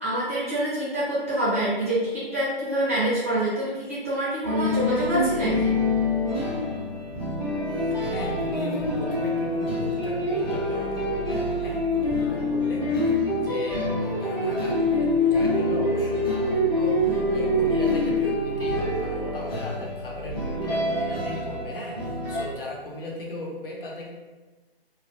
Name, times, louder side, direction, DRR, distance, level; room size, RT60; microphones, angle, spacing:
voice 1, 0.0-5.7, right 1 dB, 15° right, -10 dB, 0.4 m, -26 dB
sound 1, 4.4-22.4, left 1 dB, 25° left, 0.7 m, -25 dB
voice 2, 7.7-12.9 13.3-24.1, left 1 dB, 60° left, -2 dB, 0.7 m, -37 dB
2.3 x 2.0 x 2.6 m, 1.2 s
figure-of-eight pair, 155°, 31 cm